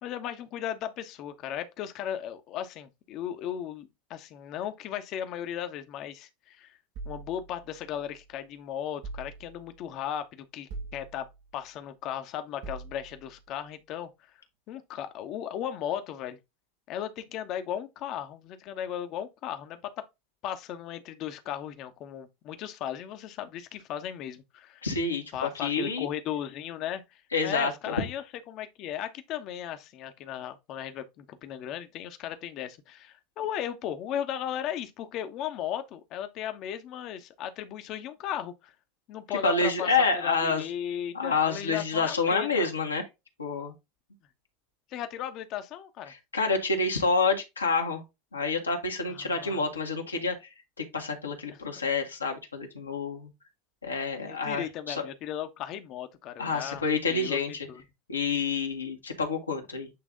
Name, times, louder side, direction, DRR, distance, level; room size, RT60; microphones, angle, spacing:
voice 1, 0.0-6.8 7.0-11.3 11.5-14.1 14.7-16.4 16.9-20.0 20.4-24.8 25.3-38.7 39.1-39.9 40.1-42.7 44.9-46.1 49.1-49.6 51.5-51.6 54.2-56.8 57.1-57.4 57.7-57.8, left 10 dB, 45° left, 1.2 m, -36 dB
sound 1, 6.9-8.3 9.0-9.9 10.7-11.6 12.6-13.4, right 3 dB, 55° right, 1.8 m, -43 dB
voice 2, 24.8-26.1 27.3-27.9 39.3-40.6 41.1-43.1 43.4-43.7 46.1-48.0 48.3-50.3 50.8-53.3 53.8-55.1 56.4-57.7 58.1-59.9, left 4 dB, 80° left, 1.6 m, -28 dB
8.7 x 3.4 x 3.8 m
figure-of-eight pair, 75°, 0 cm